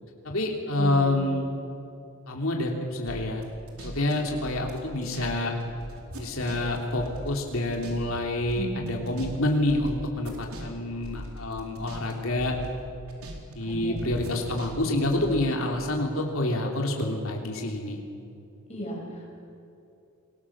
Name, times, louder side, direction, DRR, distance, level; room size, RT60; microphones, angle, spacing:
voice 1, 0.2-1.6 2.3-3.4 3.8-5.5 6.2-12.5 13.5-18.0, left 1 dB, 65° left, 1 dB, 3.3 m, -27 dB
voice 2, 0.8-1.1 8.5-9.0 13.6-14.0 18.7-19.3, equal, 30° left, -2 dB, 7.7 m, -35 dB
sound 1, 3.1-5.3 5.6-8.2 8.5-12.1 12.4-13.6 14.0-15.4, equal, 80° right, 4.7 m, -40 dB
29.0 x 22.5 x 7.4 m, 2.7 s
head